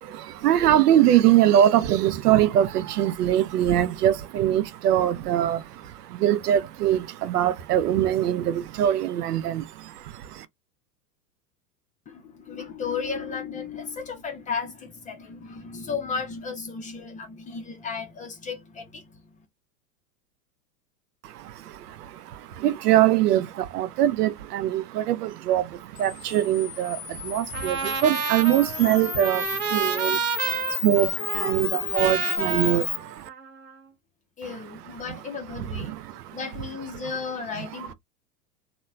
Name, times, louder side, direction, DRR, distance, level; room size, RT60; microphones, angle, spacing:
voice 1, 0.0-10.5 21.2-33.3 35.1-35.2 35.6-36.4 36.9-37.0 37.5-37.9, right 11 dB, 70° right, 0.6 m, -23 dB
voice 2, 12.1-19.5 34.4-36.0 36.3-37.9, left 5 dB, 15° left, 0.5 m, -34 dB
Camera, 26.0-33.0, left 10 dB, 75° left, 0.8 m, -32 dB
Trumpet, 27.5-33.8, right 9 dB, 30° right, 0.6 m, -30 dB
2.8 x 2.2 x 2.3 m
hypercardioid pair, 95°, 49 cm